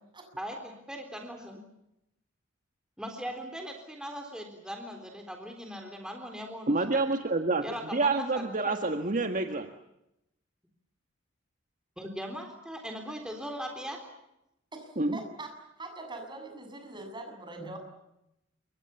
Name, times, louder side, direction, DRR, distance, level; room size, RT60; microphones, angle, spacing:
voice 1, 0.4-1.6 3.0-6.8 7.6-8.7 12.0-14.0 17.6-17.8, equal, 5° right, 3 dB, 3.8 m, -39 dB
voice 2, 6.7-7.6 7.9-9.7 15.0-15.2, right 3 dB, 40° right, 6 dB, 1.7 m, -27 dB
voice 3, 14.7-15.5 15.8-17.8, right 2 dB, 25° right, 4 dB, 7.5 m, -42 dB
28.5 x 24.0 x 7.1 m, 0.85 s
head